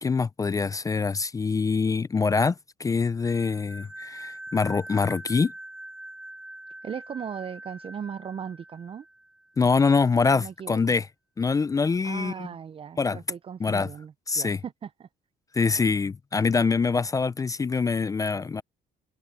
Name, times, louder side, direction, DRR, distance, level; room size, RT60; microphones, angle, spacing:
voice 1, 0.0-2.5 2.8-5.5 9.6-11.1 11.4-12.5 13.0-13.2 13.6-13.9 14.3-14.6 15.5-18.6, left 4 dB, 20° left, 0.4 m, -24 dB
sound 1, 3.2-9.6, right 1 dB, 5° right, 3.6 m, -44 dB
voice 2, 6.8-9.0 10.3-10.8 12.0-15.1, right 7 dB, 35° right, 0.5 m, -38 dB
cardioid pair, 110°, 17 cm